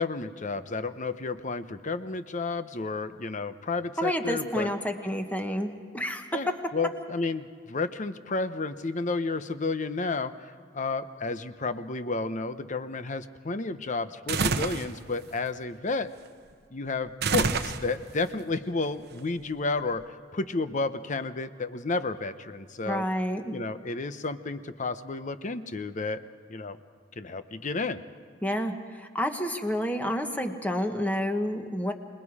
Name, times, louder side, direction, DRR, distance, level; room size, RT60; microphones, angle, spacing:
voice 1, 0.0-4.7 6.3-6.5 6.7-16.1 16.7-23.1 23.5-26.2 26.5-26.8 27.2-28.0, left 3 dB, 40° left, 11 dB, 0.8 m, -31 dB
voice 2, 4.0-6.2 22.8-23.5 28.4-31.9, equal, 10° left, 5 dB, 1.4 m, -29 dB
sound 1, 14.3-14.9 17.2-18.2, right 4 dB, 60° right, 0.9 m, -27 dB
26.5 x 21.0 x 4.9 m, 2.1 s
head